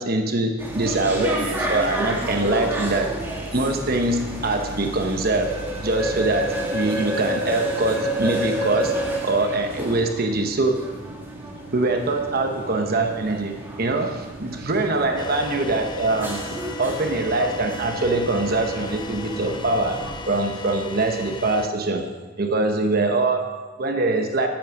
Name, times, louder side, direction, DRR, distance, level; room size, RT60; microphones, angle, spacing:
voice 1, 0.0-3.1 3.5-5.6 5.8-8.9 9.2-10.8 11.7-16.4 16.8-24.5, right 2 dB, 50° right, 5 dB, 1.0 m, -23 dB
sound 1, 0.6-20.2, equal, 10° right, 2.1 m, -30 dB
sound 2, 15.2-21.7, left 2 dB, 25° left, 0.5 m, -36 dB
9.9 x 8.7 x 6.0 m, 1.3 s
head